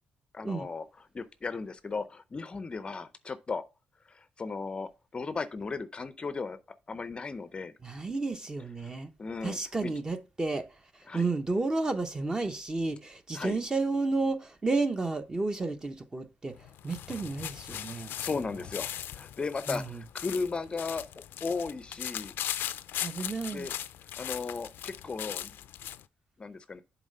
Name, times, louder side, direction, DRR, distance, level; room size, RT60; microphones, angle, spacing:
voice 1, 0.3-0.8 1.1-3.6 4.1-6.6 6.9-7.7 9.2-9.9 11.1-11.3 13.3-13.6 18.0-22.3 23.5-23.7 24.2-25.5 26.4-26.8, left 4 dB, 30° left, 0.5 m, -36 dB
voice 2, 7.8-9.1 9.4-10.7 10.9-16.6 16.8-18.2 18.5-18.6 19.7-20.0 23.0-23.7, right 3 dB, 20° right, 0.8 m, -31 dB
sound 1, 16.6-26.0, left 11 dB, 85° left, 0.4 m, -39 dB
7.2 x 4.0 x 5.3 m
cardioid pair, 110°, 3 cm